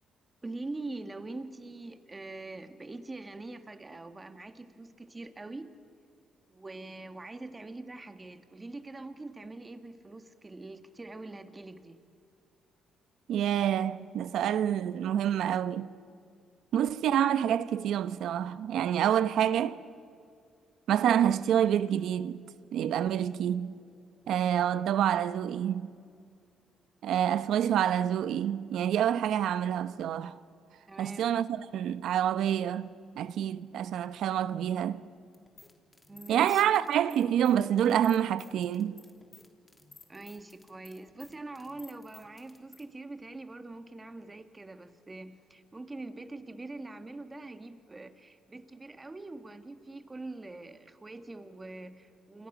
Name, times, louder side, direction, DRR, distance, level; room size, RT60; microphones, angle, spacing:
voice 1, 0.4-5.7 6.5-12.0 30.9-31.3 36.1-36.6 40.1-52.5, right 2 dB, 20° right, 1.8 m, -43 dB
voice 2, 13.3-15.9 16.7-19.8 20.9-22.4 22.7-23.8 24.3-25.9 27.0-30.4 31.0-32.9 33.2-35.0 36.3-39.0, right 10 dB, 75° right, 0.9 m, -27 dB
sound 1, 35.3-42.8, left 2 dB, 20° left, 3.0 m, -54 dB
28.5 x 26.5 x 6.2 m
cardioid pair, 90°, 0 cm